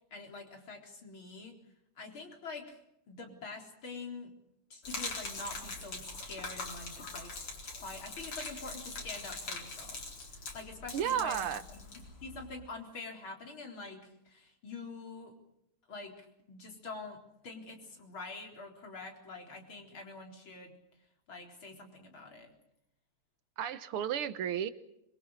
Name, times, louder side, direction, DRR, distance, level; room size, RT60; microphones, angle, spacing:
voice 1, 0.1-1.6 2.0-2.8 3.1-4.3 4.7-7.3 7.8-10.0 10.5-11.4 11.7-11.9 12.2-15.3 15.9-16.1 16.5-17.2 17.4-20.7 21.3-22.5, left 3 dB, 65° left, 2 dB, 4.7 m, -45 dB
Gurgling / Liquid, 4.8-12.5, left 3 dB, 90° left, 5.1 m, -42 dB
voice 2, 10.9-11.7 23.6-24.7, right 9 dB, 80° right, 13 dB, 2.0 m, -33 dB
25.0 x 23.5 x 6.5 m, 0.80 s
omnidirectional pair, 2.4 m